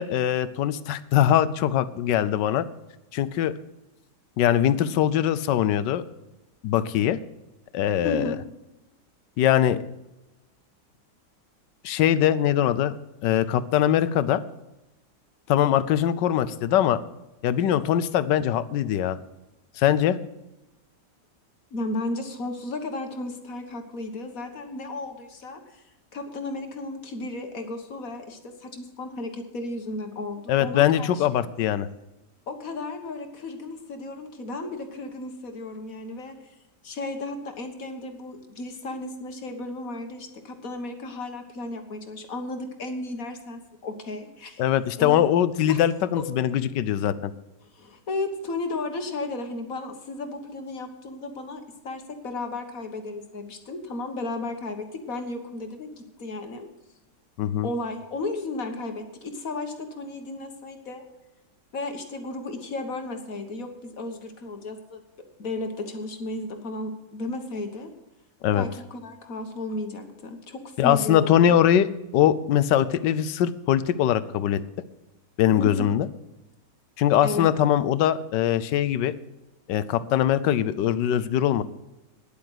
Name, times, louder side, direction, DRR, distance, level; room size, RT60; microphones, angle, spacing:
voice 1, 0.0-2.6 3.1-3.5 4.4-6.0 6.6-7.2 7.7-8.4 9.4-9.8 11.8-13.0 13.2-14.4 15.5-17.0 17.4-19.2 19.8-20.2 30.5-31.9 44.6-47.3 57.4-57.7 68.4-68.7 70.8-74.6 75.4-76.1 77.0-79.1 79.7-81.6, left 10 dB, 80° left, 14 dB, 1.3 m, -22 dB
voice 2, 8.0-8.4 21.7-25.8 26.1-31.2 32.5-36.5 36.8-44.6 45.0-45.3 45.7-45.8 47.7-56.7 57.6-61.1 61.7-65.0 65.4-67.9 68.5-71.6 75.6-75.9 77.2-77.5, left 2 dB, 55° left, 6 dB, 1.7 m, -34 dB
10.5 x 8.6 x 7.9 m, 0.99 s
omnidirectional pair, 1.9 m